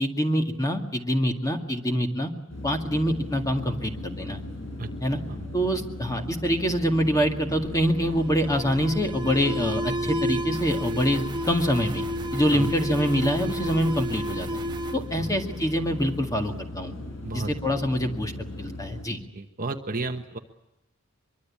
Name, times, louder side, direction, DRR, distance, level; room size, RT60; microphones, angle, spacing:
voice 1, 0.0-2.3 2.6-4.4 5.0-5.2 5.5-12.0 12.3-14.5 14.9-16.9 17.3-18.3 18.6-19.2, equal, 15° left, 4 dB, 2.1 m, -25 dB
sound 1, 2.5-19.1, left 2 dB, 65° left, 7.9 m, -37 dB
Alarm, 7.5-16.1, equal, 20° right, 1.3 m, -32 dB
voice 2, 19.3-20.4, right 2 dB, 40° right, 5 dB, 1.2 m, -32 dB
23.5 x 23.5 x 8.6 m, 0.94 s
head